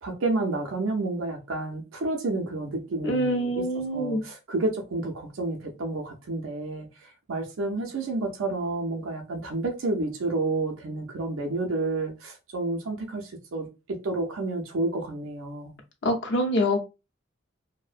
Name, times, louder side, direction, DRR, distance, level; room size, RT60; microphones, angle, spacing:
voice 1, 0.0-3.6 3.9-15.8, right 2 dB, 85° right, 0.5 m, -30 dB
voice 2, 3.0-4.2 16.0-16.8, equal, 60° left, 0.6 m, -25 dB
2.6 x 2.0 x 2.4 m
head